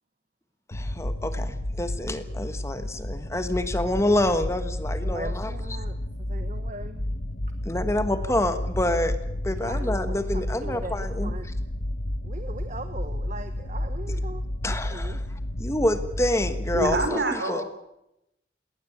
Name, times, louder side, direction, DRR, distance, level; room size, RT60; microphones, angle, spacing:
sound 1, 0.7-17.1, left 1 dB, 70° left, 1.5 m, -31 dB
voice 1, 0.7-5.5 7.6-9.2 9.4-11.3 14.6-15.3 15.6-17.6, left 1 dB, 15° left, 10 dB, 1.4 m, -27 dB
voice 2, 5.0-7.0 9.5-11.5 12.2-15.2, right 2 dB, 40° right, 9 dB, 1.2 m, -40 dB
voice 3, 16.7-17.6, right 2 dB, 70° right, 7 dB, 4.9 m, -26 dB
19.5 x 18.5 x 8.5 m, 0.84 s
head